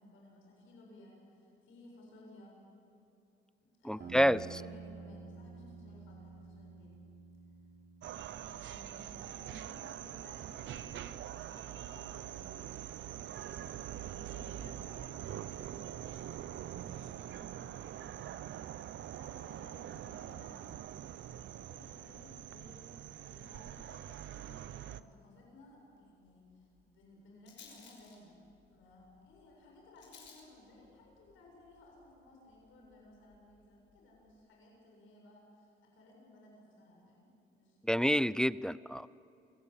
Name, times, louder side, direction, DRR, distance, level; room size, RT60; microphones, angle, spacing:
voice 1, 0.0-2.6 3.6-7.0 8.0-12.9 13.2-18.6 19.1-28.4 28.7-38.2, left 1 dB, 90° left, -1 dB, 7.6 m, -58 dB
voice 2, 3.9-4.4 37.9-39.1, equal, 5° left, 18 dB, 0.5 m, -28 dB
sound 1, 4.0-8.7, right 5 dB, 55° right, 5.1 m, -50 dB
sound 2, 8.0-25.0, right 11 dB, 70° right, 0.8 m, -44 dB
Rattle, 25.4-34.4, left 5 dB, 70° left, 6.1 m, -63 dB
27.5 x 17.0 x 8.9 m, 2.7 s
cardioid pair, 90°, 20 cm